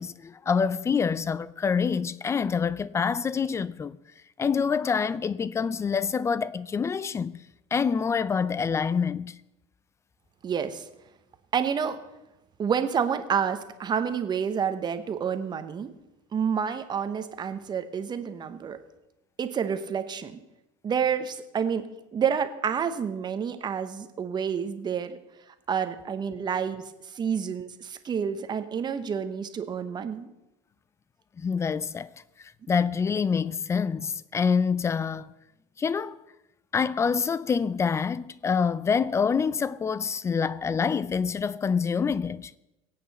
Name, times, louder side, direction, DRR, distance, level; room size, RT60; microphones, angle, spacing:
voice 1, 0.0-4.0 4.4-7.4 7.7-9.4 31.4-32.1 32.4-35.3 35.8-36.2 36.7-42.5, left 6 dB, 15° left, 0.4 m, -26 dB
voice 2, 10.4-10.9 11.5-12.0 12.6-15.9 16.3-18.8 19.4-20.4 20.8-21.9 22.1-25.2 25.7-30.3, right 7 dB, 25° right, 1.0 m, -29 dB
23.5 x 8.6 x 4.1 m
cardioid pair, 140°, 16 cm